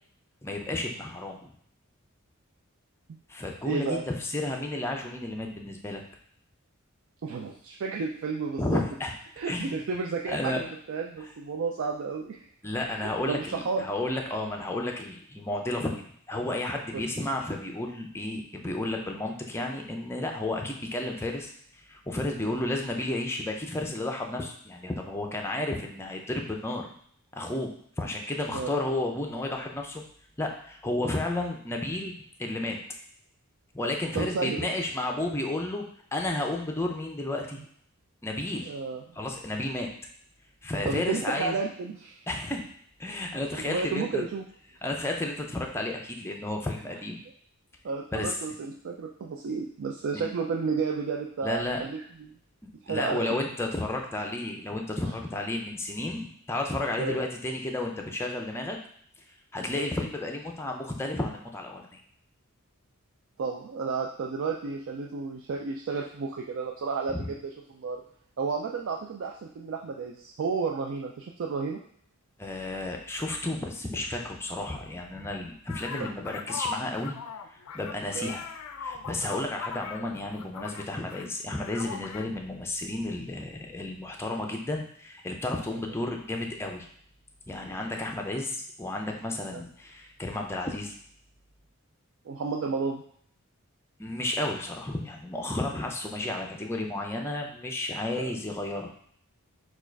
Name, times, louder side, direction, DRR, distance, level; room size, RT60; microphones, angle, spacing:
voice 1, 0.4-1.5 3.3-6.0 8.6-9.1 9.5-9.8 10.3-10.6 12.6-26.9 27.3-30.0 30.4-32.1 32.4-32.8 33.7-35.8 36.1-37.6 38.2-38.7 39.2-39.9 40.6-41.6 42.3-42.6 43.0-44.2 44.8-47.2 48.1-48.3 50.1-50.3 51.4-51.8 52.6-58.8 59.5-62.0 67.1-67.3 72.4-77.2 77.5-78.4 78.8-86.9 87.5-90.9 94.0-98.9, left 2 dB, 10° left, 1 dB, 0.5 m, -32 dB
voice 2, 3.7-4.0 7.2-8.8 9.4-12.5 12.8-13.9 28.5-28.7 34.1-34.6 38.6-39.2 40.8-42.2 43.5-44.4 47.8-52.0 52.8-53.3 57.0-57.2 59.8-59.9 63.4-67.4 67.7-68.0 68.4-71.8 75.9-76.1 78.1-78.3 89.5-89.6 92.2-93.0 98.2-98.3, right 4 dB, 60° right, 1 dB, 0.4 m, -32 dB
sound 1, 75.7-81.3 81.5-82.2, left 6 dB, 85° left, 0.4 m, -39 dB
4.5 x 2.4 x 4.5 m, 0.62 s
head